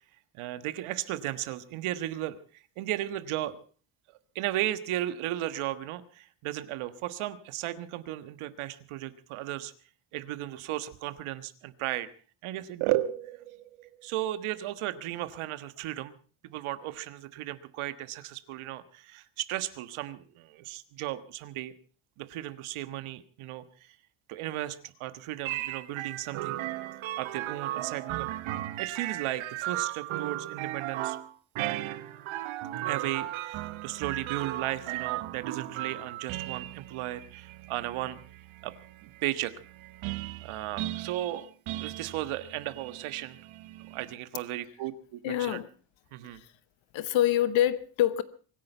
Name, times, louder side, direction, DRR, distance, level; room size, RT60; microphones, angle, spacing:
voice 1, 0.4-2.4 2.8-3.6 4.3-9.7 10.1-12.1 12.4-16.2 16.4-21.7 22.2-23.6 24.3-26.6 27.2-28.3 28.8-31.2 32.8-38.2 38.6-38.7 39.0-39.5 40.4-41.5 41.8-43.4 43.9-45.6 46.1-46.4, right 14 dB, 90° right, 1.6 m, -35 dB
sound 1, 25.4-44.1, right 15 dB, 75° right, 1.2 m, -36 dB
voice 2, 45.2-45.7 46.3-46.5 46.9-48.2, left 12 dB, 65° left, 1.0 m, -26 dB
24.5 x 10.5 x 5.5 m
cardioid pair, 170°, 48 cm